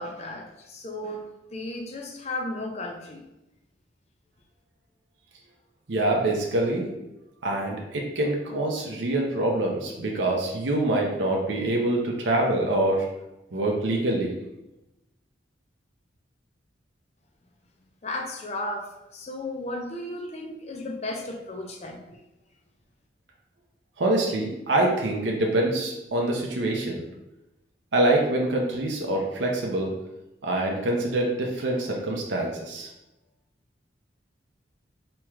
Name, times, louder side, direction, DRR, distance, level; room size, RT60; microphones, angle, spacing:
voice 1, 0.0-3.2 18.0-22.2, left 1 dB, 35° left, 3 dB, 0.5 m, -34 dB
voice 2, 5.9-6.9 7.4-13.1 13.5-14.3 24.0-27.0 27.9-29.9 30.4-32.9, right 1 dB, 75° right, -1 dB, 0.6 m, -25 dB
4.4 x 3.0 x 2.4 m, 0.93 s
head